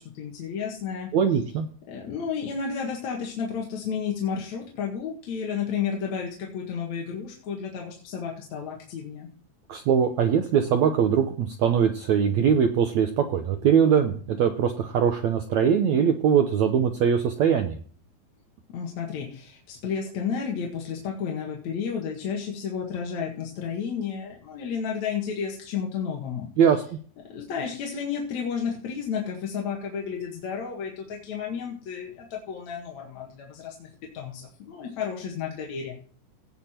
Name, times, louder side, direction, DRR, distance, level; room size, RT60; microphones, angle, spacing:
voice 1, 0.0-1.1 1.9-9.3 18.7-26.5 27.3-33.9 34.1-35.9, left 7 dB, 55° left, -1 dB, 2.8 m, -32 dB
voice 2, 1.1-1.7 9.7-17.8 26.6-27.0, right 7 dB, 70° right, 6 dB, 1.8 m, -22 dB
17.5 x 5.9 x 4.4 m, 0.44 s
omnidirectional pair, 4.2 m